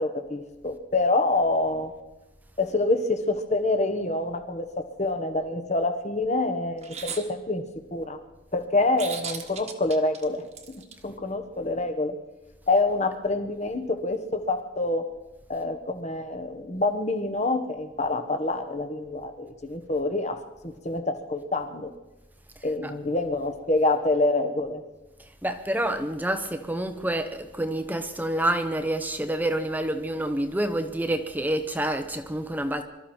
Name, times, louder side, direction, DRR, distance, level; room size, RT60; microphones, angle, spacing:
voice 1, 0.0-1.9 2.6-7.6 7.9-8.2 8.5-12.2 12.7-15.0 15.5-20.4 20.6-21.9 22.6-24.8, left 2 dB, 35° left, 8 dB, 1.3 m, -26 dB
sound 1, 6.8-7.2 9.0-10.9, right 6 dB, 35° right, 1.5 m, -36 dB
voice 2, 22.6-22.9 25.2-32.8, right 1 dB, 10° right, 8 dB, 0.9 m, -28 dB
24.0 x 13.5 x 4.5 m, 1.1 s
head